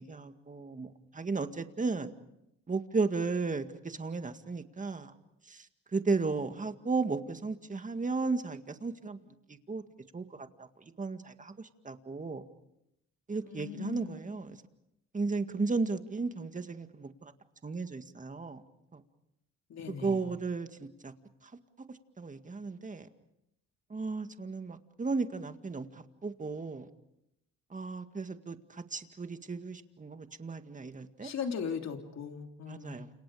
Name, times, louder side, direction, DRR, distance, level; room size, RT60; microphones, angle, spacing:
voice 1, 0.0-2.1 2.7-5.1 5.5-5.7 5.9-9.2 9.5-9.8 10.1-10.7 11.0-12.4 13.3-14.6 15.1-17.3 17.6-18.6 18.9-19.0 20.0-21.1 22.2-23.1 23.9-26.9 27.7-31.3 32.7-33.1, right 4 dB, 25° right, 2.0 m, -35 dB
voice 2, 13.4-14.3 19.7-20.2 31.2-33.1, left 6 dB, 60° left, 3.5 m, -39 dB
29.5 x 28.0 x 5.0 m
cardioid pair, 90°, 30 cm